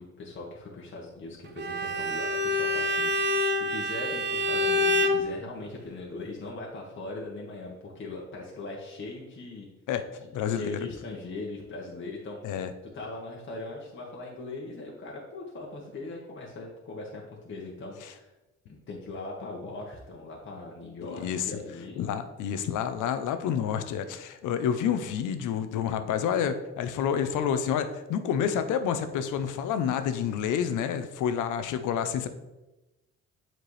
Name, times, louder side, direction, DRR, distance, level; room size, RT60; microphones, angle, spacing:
voice 1, 0.0-9.7 10.4-12.6 12.9-18.3 18.7-22.0, left 2 dB, 40° left, -3 dB, 1.3 m, -40 dB
Bowed string instrument, 1.6-5.3, left 1 dB, 35° right, 0.6 m, -26 dB
voice 2, 10.3-10.8 12.4-12.7 21.0-21.6 22.0-32.3, left 8 dB, 80° left, 9 dB, 0.7 m, -29 dB
7.6 x 4.5 x 3.2 m, 1.0 s
cardioid pair, 90°, 30 cm